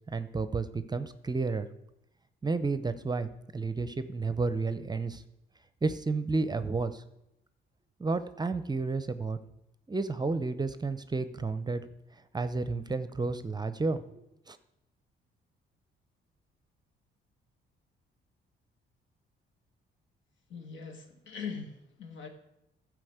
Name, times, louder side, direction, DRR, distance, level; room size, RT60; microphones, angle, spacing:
voice 1, 0.1-1.7 2.4-5.2 5.8-7.0 8.0-9.4 9.9-11.8 12.3-14.6, right 3 dB, 20° right, 12 dB, 0.7 m, -31 dB
voice 2, 20.5-22.3, left 6 dB, 75° left, 4 dB, 2.1 m, -41 dB
13.0 x 4.9 x 8.0 m, 0.85 s
cardioid pair, 90°, 20 cm